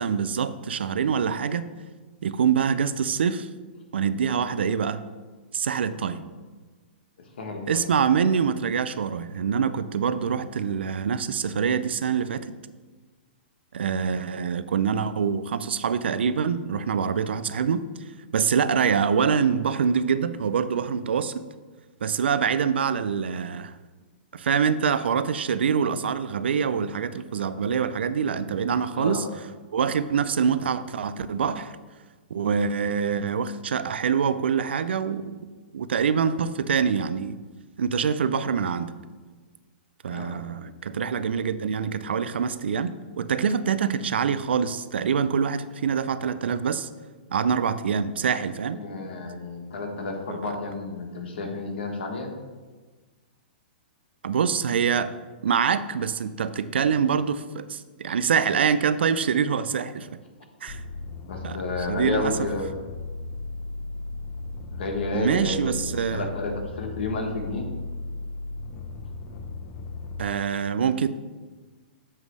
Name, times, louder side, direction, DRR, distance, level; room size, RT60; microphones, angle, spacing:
voice 1, 0.0-1.7 2.2-3.5 3.9-5.0 5.5-6.3 7.7-12.6 13.7-17.8 18.3-21.5 22.0-23.7 24.3-29.3 29.7-31.8 32.3-35.4 35.7-37.4 37.8-39.0 40.0-46.9 47.3-48.8 50.3-50.5 54.2-55.1 55.4-60.1 60.6-60.8 61.4-61.6 61.9-62.4 65.1-66.2 70.2-71.1, right 6 dB, 80° right, 13 dB, 0.4 m, -25 dB
voice 2, 7.4-7.9 8.2-8.3 28.9-29.3 40.1-40.4 48.7-52.3 61.3-62.7 64.7-67.7, left 3 dB, 70° left, 2 dB, 1.4 m, -31 dB
sound 1, 60.7-70.2, left 3 dB, 40° left, 0.7 m, -36 dB
7.4 x 3.1 x 6.2 m, 1.3 s
hypercardioid pair, 125°, 6 cm